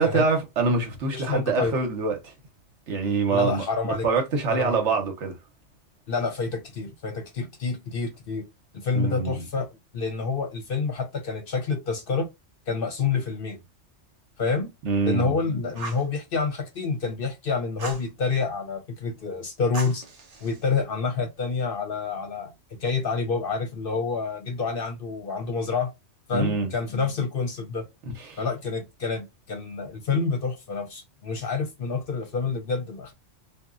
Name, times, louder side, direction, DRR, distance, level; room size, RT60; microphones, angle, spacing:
voice 1, 0.0-2.3 2.9-5.4 8.9-9.4 14.8-15.4 26.3-26.7 28.1-28.4, right 4 dB, 70° right, 1.2 m, -25 dB
voice 2, 1.1-1.7 3.3-4.1 4.5-4.7 6.1-8.5 8.7-9.7 9.9-12.3 12.7-13.6 14.4-14.7 15.0-20.0 20.4-25.9 26.3-27.8 28.4-33.1, left 4 dB, 55° left, 0.8 m, -28 dB
Fire, 15.7-16.1 17.8-18.1 19.7-20.7, right 3 dB, 40° right, 0.6 m, -38 dB
2.9 x 2.4 x 2.4 m
omnidirectional pair, 1.3 m